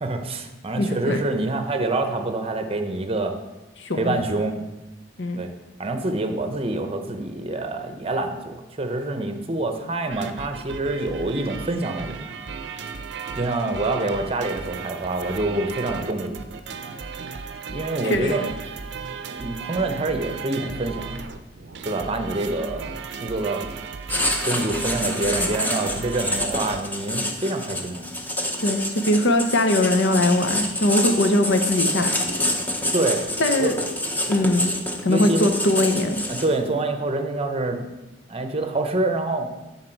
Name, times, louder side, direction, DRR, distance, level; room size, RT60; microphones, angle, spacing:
voice 1, 0.0-3.4 4.0-4.6 5.4-5.5 5.8-12.3 13.4-16.4 17.7-18.4 19.3-21.2 21.8-23.6 24.5-28.1 32.9-33.2 33.6-33.7 35.1-35.5 36.3-37.8 38.3-39.5, right 2 dB, 35° right, 6 dB, 0.7 m, -26 dB
voice 2, 0.8-1.2 3.8-4.2 5.2-5.4 18.0-18.5 22.6-22.7 28.6-32.3 33.4-33.8 34.3-34.7 35.0-36.2, left 1 dB, 80° left, 7 dB, 0.8 m, -21 dB
sound 1, 10.1-26.8, right 5 dB, 65° right, 0.5 m, -35 dB
Writing, 24.1-36.7, left 1 dB, 10° left, 0.8 m, -27 dB
10.5 x 4.1 x 4.5 m, 1.1 s
head